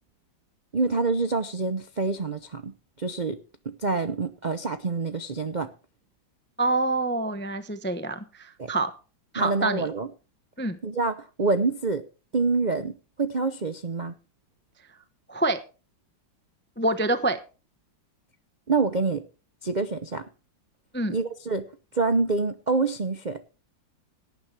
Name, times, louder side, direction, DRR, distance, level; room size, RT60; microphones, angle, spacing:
voice 1, 0.7-3.4 3.8-5.7 8.6-8.7 9.4-10.1 10.8-12.0 12.3-14.1 18.7-19.2 19.6-20.3 21.1-21.7 21.9-23.4, right 3 dB, 45° right, 9 dB, 0.5 m, -26 dB
voice 2, 6.6-8.9 9.3-9.9 10.6-10.8 15.3-15.6 16.8-17.4 20.9-21.2, right 2 dB, 10° left, 10 dB, 0.5 m, -26 dB
18.0 x 9.6 x 3.3 m, 0.34 s
omnidirectional pair, 2.0 m